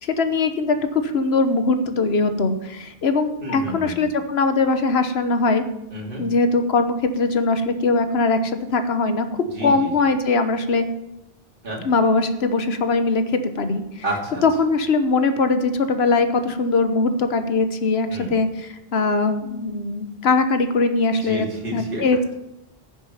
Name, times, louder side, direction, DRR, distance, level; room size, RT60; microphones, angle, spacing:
voice 1, 0.0-5.6 6.2-10.8 11.8-14.0 14.4-21.5 21.7-22.3, left 3 dB, 90° left, 9 dB, 1.3 m, -21 dB
voice 2, 3.4-4.0 5.9-6.3 9.5-9.9 11.6-11.8 14.0-14.4 18.1-18.3 21.2-22.0, equal, 60° right, -2 dB, 2.8 m, -29 dB
15.5 x 6.9 x 5.6 m, 0.88 s
omnidirectional pair, 1.0 m